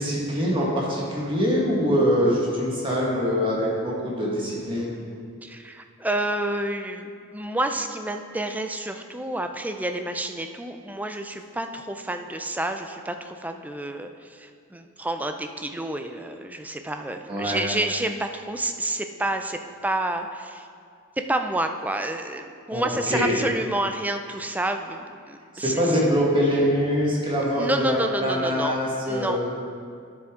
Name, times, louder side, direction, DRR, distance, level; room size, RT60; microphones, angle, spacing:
voice 1, 0.0-4.9 17.3-17.6 22.7-23.4 25.5-29.6, equal, 25° right, -4 dB, 1.7 m, -24 dB
voice 2, 5.4-20.7 21.3-25.9 27.6-28.8 29.1-29.4, right 1 dB, 10° right, 6 dB, 0.4 m, -29 dB
10.5 x 7.1 x 3.7 m, 2.3 s
head